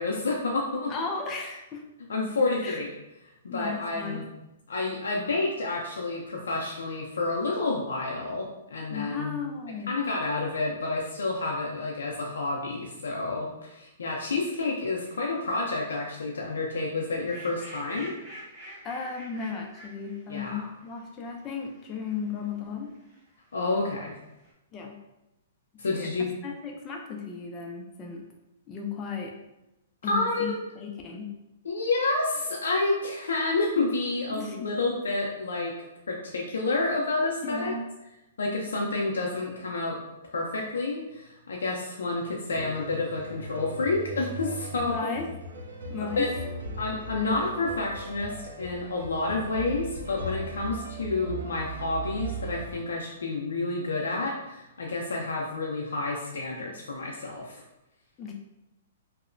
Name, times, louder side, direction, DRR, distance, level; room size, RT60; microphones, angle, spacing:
voice 1, 0.0-0.9 2.1-2.9 3.4-4.2 4.7-8.5 8.7-9.4 9.9-18.1 20.3-20.6 23.5-24.1 25.8-26.3 30.0-30.5 31.6-35.7 36.1-37.7 38.4-40.0 40.3-45.2 46.0-46.3 46.8-57.6, left 3 dB, 90° left, -2 dB, 0.4 m, -29 dB
voice 2, 0.9-1.8 2.6-2.8 3.5-4.2 8.9-9.9 18.8-22.9 24.7-25.0 25.7-28.3 28.7-29.3 30.0-31.4 34.3-34.7 37.4-37.8 44.9-45.3 45.9-46.3 58.2-58.3, left 5 dB, 25° left, 1 dB, 0.4 m, -35 dB
sound 1, 14.4-23.4 23.8-24.5, equal, 10° right, 1.0 m, -49 dB
sound 2, 42.5-52.7, right 2 dB, 80° right, 0.4 m, -38 dB
2.8 x 2.0 x 2.5 m, 0.92 s
hypercardioid pair, 140°, 0 cm